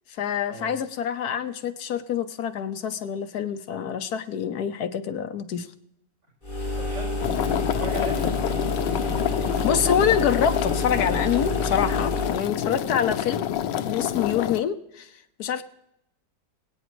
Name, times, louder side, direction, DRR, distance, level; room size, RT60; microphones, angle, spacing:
voice 1, 0.1-5.7 9.6-13.5 13.8-15.6, left 8 dB, 70° left, 10 dB, 1.1 m, -26 dB
sound 1, 6.4-12.5, left 2 dB, 30° left, 2.1 m, -29 dB
voice 2, 6.8-8.4, right 2 dB, 85° right, -5 dB, 5.6 m, -37 dB
sound 2, 7.2-14.6, left 10 dB, 85° left, 1.3 m, -28 dB
23.5 x 8.9 x 3.1 m, 0.82 s
omnidirectional pair, 1.9 m